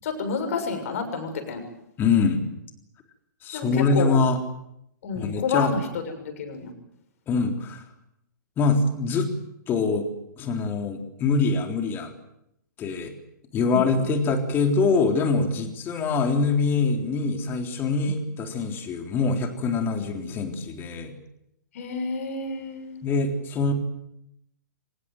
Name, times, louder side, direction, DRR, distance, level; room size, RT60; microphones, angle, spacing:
voice 1, 0.0-1.6 3.5-4.1 5.0-5.8 6.1-6.7 13.7-14.1 18.0-18.2 19.9-20.0 21.7-23.0, left 5 dB, 45° left, 6 dB, 6.8 m, -29 dB
voice 2, 2.0-2.4 3.4-4.4 5.1-5.7 7.3-7.9 8.6-9.3 9.7-10.1 10.4-12.1 12.8-13.1 13.5-21.1 23.0-23.7, left 4 dB, 20° left, 5 dB, 3.7 m, -24 dB
24.5 x 19.5 x 9.2 m, 0.81 s
figure-of-eight pair, 115°, 10 cm